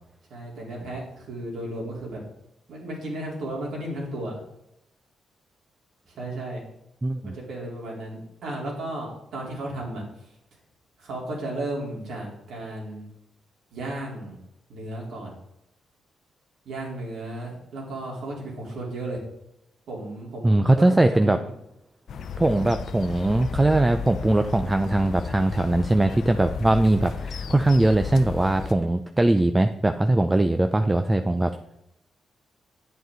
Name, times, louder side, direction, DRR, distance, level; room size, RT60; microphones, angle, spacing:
voice 1, 0.3-2.2 2.7-4.4 6.1-6.6 7.2-10.3 11.0-13.1 13.7-14.4 14.7-15.3 16.6-19.2 19.9-21.5, right 1 dB, 80° right, -2 dB, 3.7 m, -34 dB
voice 2, 7.0-7.3 20.4-21.4 22.4-31.6, right 2 dB, 15° right, 8 dB, 0.5 m, -21 dB
sound 1, 22.1-28.7, left 6 dB, 70° left, 0.7 m, -34 dB
9.5 x 7.8 x 3.9 m, 0.82 s
cardioid pair, 95°, 0 cm